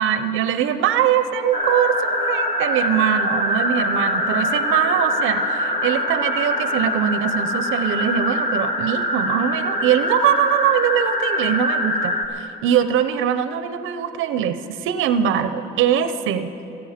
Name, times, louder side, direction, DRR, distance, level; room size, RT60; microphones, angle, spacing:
voice 1, 0.0-16.6, right 9 dB, 85° right, 11 dB, 0.7 m, -22 dB
sound 1, 1.5-12.3, left 1 dB, 30° left, 1.6 m, -23 dB
25.5 x 9.2 x 5.1 m, 2.9 s
cardioid pair, 90°, 20 cm